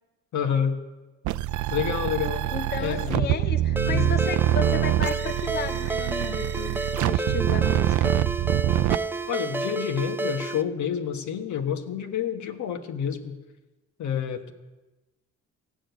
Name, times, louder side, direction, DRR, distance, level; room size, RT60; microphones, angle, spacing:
voice 1, 0.3-0.8 1.7-2.5 2.8-3.4 3.8-4.1 9.3-13.4 14.0-14.5, left 8 dB, 70° left, 6 dB, 1.3 m, -28 dB
sound 1, 1.2-9.0, right 13 dB, 75° right, 0.5 m, -25 dB
voice 2, 2.5-8.1, left 5 dB, 35° left, 9 dB, 0.6 m, -34 dB
Ringtone, 3.8-10.6, right 2 dB, 5° right, 0.4 m, -31 dB
15.0 x 6.4 x 9.2 m, 1.1 s
cardioid pair, 90°, 30 cm